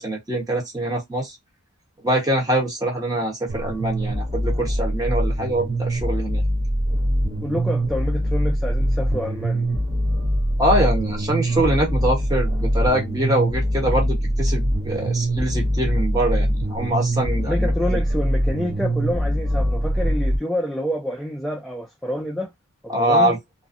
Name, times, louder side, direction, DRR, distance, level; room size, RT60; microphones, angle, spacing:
voice 1, 0.0-1.4 2.0-6.4 10.6-18.0 22.9-23.4, right 1 dB, 15° right, 1.0 m, -23 dB
sound 1, 3.5-20.4, equal, 40° right, 0.6 m, -23 dB
voice 2, 7.4-9.7 17.4-22.5 22.8-23.3, equal, ahead, 0.3 m, -28 dB
2.5 x 2.1 x 2.5 m
head